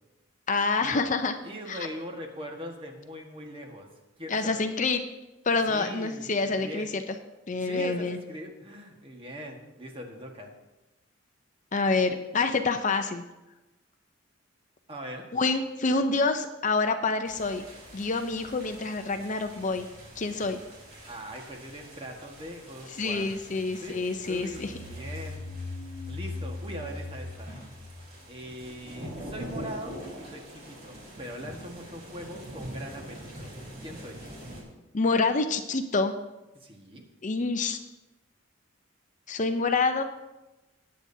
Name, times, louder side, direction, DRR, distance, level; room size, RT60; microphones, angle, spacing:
voice 1, 0.5-1.4 1.7-1.8 4.3-5.0 5.5-7.0 7.5-8.2 11.7-13.2 15.3-17.7 17.9-19.9 20.2-20.6 23.0-24.7 34.9-36.1 37.2-37.8 39.3-40.0, left 3 dB, 40° left, 7 dB, 0.6 m, -27 dB
voice 2, 1.4-3.9 4.2-4.6 5.6-6.9 7.6-10.5 14.9-15.2 21.1-23.3 23.8-25.4 26.1-27.5 28.3-34.2 36.5-37.0, equal, 25° right, 2 dB, 1.5 m, -41 dB
sound 1, 17.2-34.6, right 1 dB, 50° right, 3.8 m, -45 dB
sound 2, 24.3-28.9, left 2 dB, 80° left, 1.1 m, -39 dB
19.0 x 8.7 x 2.7 m, 1.0 s
head